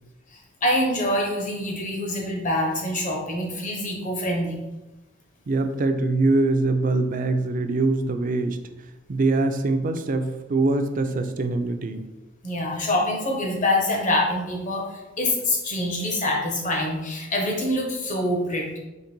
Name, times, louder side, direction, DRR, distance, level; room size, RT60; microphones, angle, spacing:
voice 1, 0.6-4.6 12.4-14.8 15.2-18.8, left 1 dB, 40° left, 0 dB, 1.0 m, -25 dB
voice 2, 5.5-8.6 9.1-12.0, right 2 dB, 45° right, 7 dB, 0.4 m, -23 dB
3.8 x 3.0 x 4.5 m, 1.0 s
head